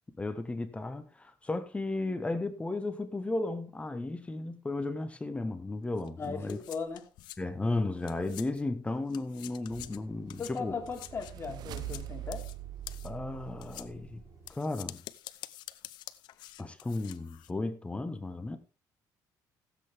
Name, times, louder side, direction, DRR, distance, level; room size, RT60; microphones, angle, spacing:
voice 1, 0.2-6.6 7.4-10.8 13.0-14.2 14.5-15.0 16.6-18.6, left 2 dB, 15° left, 1.2 m, -34 dB
sound 1, 6.0-8.8 9.1-17.5, left 15 dB, 85° left, 0.7 m, -48 dB
voice 2, 6.2-7.0 10.4-12.5, left 5 dB, 35° left, 3.5 m, -38 dB
sound 2, 8.9-14.5, right 3 dB, 40° right, 3.8 m, -55 dB
sound 3, 10.2-14.4, right 15 dB, 70° right, 0.6 m, -43 dB
16.0 x 8.2 x 3.5 m
cardioid pair, 100°, 7 cm